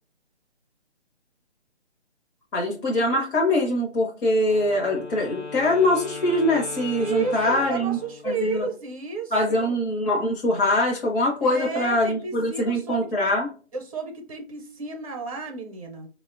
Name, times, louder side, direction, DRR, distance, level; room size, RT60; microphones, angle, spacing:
voice 1, 2.5-8.0 8.2-8.7 9.3-13.5, left 1 dB, 50° left, -1 dB, 0.7 m, -23 dB
Wind instrument woodwind instrument, 4.4-8.5, left 3 dB, 85° left, 1.0 m, -38 dB
voice 2, 7.0-9.7 11.4-13.1 13.7-16.1, right 5 dB, 30° right, 3 dB, 0.6 m, -32 dB
3.8 x 2.0 x 2.4 m, 0.39 s
figure-of-eight pair, 155°, 34 cm